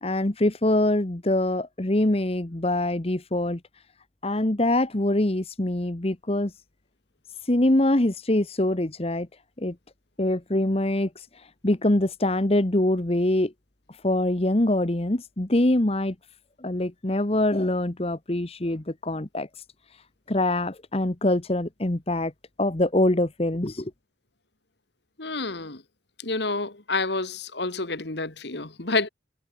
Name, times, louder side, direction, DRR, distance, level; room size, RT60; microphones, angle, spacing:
voice 1, 0.0-3.6 4.2-6.5 7.5-9.3 9.6-9.7 10.2-11.3 11.6-13.5 14.0-16.1 16.6-19.5 20.3-22.3 22.6-23.9, left 1 dB, 30° left, 1.2 m, -24 dB
voice 2, 25.2-25.8 26.2-29.1, left 3 dB, 65° left, 2.1 m, -29 dB
head